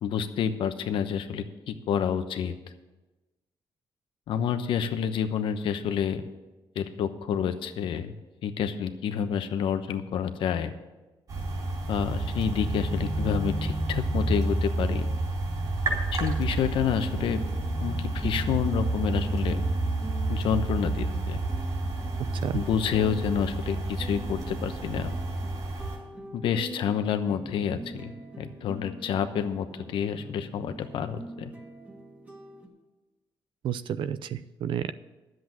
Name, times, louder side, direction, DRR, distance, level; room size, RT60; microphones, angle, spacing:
voice 1, 0.0-2.5 4.3-6.2 6.8-8.1 8.4-10.7 11.9-15.1 16.1-17.4 17.8-19.6 20.3-21.4 22.5-25.1 26.3-28.1 28.4-31.5, left 8 dB, 80° left, 9 dB, 0.9 m, -29 dB
sound 1, 11.3-26.0, right 2 dB, 50° right, 3.9 m, -30 dB
sound 2, 16.5-32.7, right 2 dB, 15° right, 1.9 m, -44 dB
voice 2, 33.6-34.9, right 9 dB, 75° right, 15 dB, 0.6 m, -31 dB
10.5 x 7.8 x 7.6 m, 1.1 s
cardioid pair, 100°, 9 cm